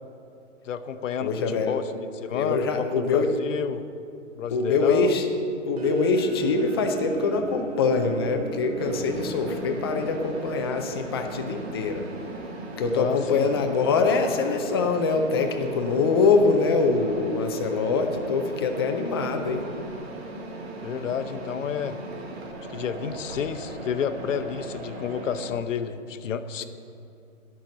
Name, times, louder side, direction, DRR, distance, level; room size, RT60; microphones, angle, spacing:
voice 1, 0.6-3.8 4.4-5.2 12.9-13.5 20.8-22.0 22.7-26.6, left 7 dB, 75° left, 10 dB, 0.8 m, -30 dB
voice 2, 1.2-1.8 2.3-3.3 4.5-5.3 5.7-12.0 12.8-19.7, left 4 dB, 20° left, 5 dB, 0.4 m, -24 dB
sound 1, 5.8-12.3, right 2 dB, 30° right, 0.9 m, -36 dB
Mechanisms, 8.8-25.5, right 2 dB, 55° right, 1.6 m, -38 dB
11.5 x 6.0 x 7.2 m, 2.6 s
hypercardioid pair, 145°, 38 cm